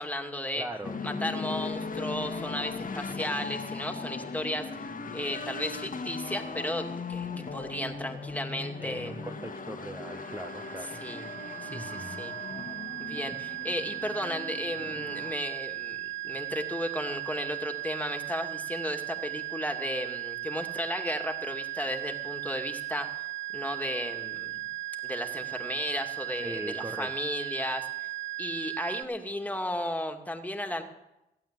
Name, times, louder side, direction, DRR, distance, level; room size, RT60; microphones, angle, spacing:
voice 1, 0.0-0.7 1.0-7.3 7.5-9.1 10.8-11.3 11.6-12.3 13.0-23.1 23.5-24.6 25.0-27.8 28.4-30.8, left 1 dB, 10° left, 4 dB, 2.4 m, -34 dB
voice 2, 0.6-1.0 8.8-11.0 11.7-12.3 26.4-27.2, right 1 dB, 15° right, 5 dB, 1.2 m, -40 dB
sound 1, 0.8-15.3, left 4 dB, 45° left, 1.7 m, -38 dB
sound 2, 10.0-29.0, right 17 dB, 70° right, 1.0 m, -37 dB
16.0 x 8.8 x 7.6 m, 0.93 s
hypercardioid pair, 40°, 19 cm